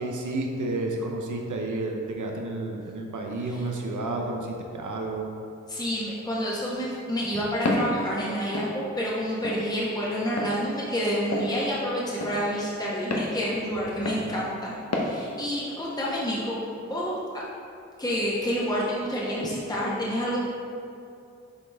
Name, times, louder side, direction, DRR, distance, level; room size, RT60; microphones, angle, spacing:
voice 1, 0.0-5.3 14.2-14.4, right 2 dB, 85° right, 1 dB, 0.8 m, -31 dB
voice 2, 5.7-17.4 18.0-20.4, equal, 15° left, -6 dB, 1.1 m, -29 dB
Walk footsteps, 7.7-7.9 8.5-8.7 9.4-9.6 10.4-10.5 11.3-11.5 12.2-12.4 13.1-13.3 14.1-14.3 14.9-15.1, left 2 dB, 60° left, 0.9 m, -28 dB
7.5 x 4.1 x 3.5 m, 2.5 s
cardioid pair, 50°, 29 cm